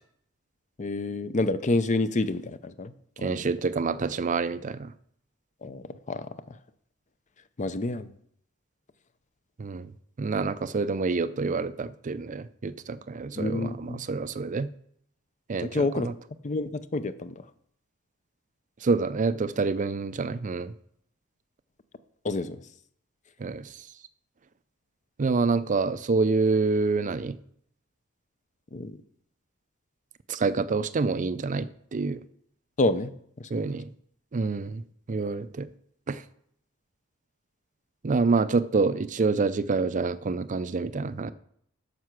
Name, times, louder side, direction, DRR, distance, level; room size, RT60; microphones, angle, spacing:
voice 1, 0.8-2.9 3.2-3.5 5.6-6.6 7.6-8.1 13.4-14.0 15.6-16.1 16.4-17.5 22.2-22.6 28.7-29.0 32.8-33.1 33.4-33.7, left 2 dB, 35° left, 0.6 m, -29 dB
voice 2, 3.2-4.9 9.6-9.9 10.2-14.7 15.5-15.8 18.8-20.7 23.4-23.7 25.2-27.4 30.3-32.2 33.5-33.9 34.3-34.8 35.1-35.7 36.1-36.2 38.0-41.3, right 4 dB, 35° right, 0.4 m, -27 dB
9.5 x 6.7 x 6.0 m
head